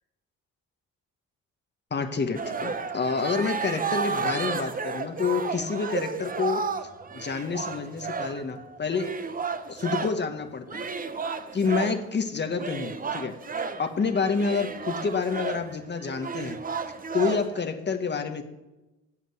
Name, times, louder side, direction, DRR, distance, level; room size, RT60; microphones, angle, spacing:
voice 1, 1.9-9.1 9.7-10.9 11.5-13.3 13.8-16.6 17.1-18.4, left 5 dB, 35° left, 6 dB, 1.1 m, -28 dB
sound 1, 2.3-10.3 10.7-12.1 12.6-17.6, right 5 dB, 30° right, 0.8 m, -32 dB
8.3 x 7.4 x 7.7 m, 1.0 s
cardioid pair, 90°, 30 cm